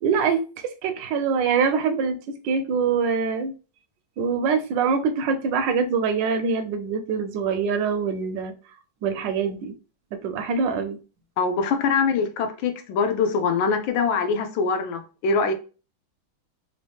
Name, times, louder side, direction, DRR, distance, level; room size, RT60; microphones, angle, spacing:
voice 1, 0.0-2.2 2.4-3.5 4.2-8.5 9.0-9.7 10.1-11.0, right 5 dB, 75° right, 1.1 m, -24 dB
voice 2, 11.4-15.5, left 5 dB, 75° left, 1.3 m, -23 dB
3.5 x 2.7 x 3.4 m
omnidirectional pair, 2.3 m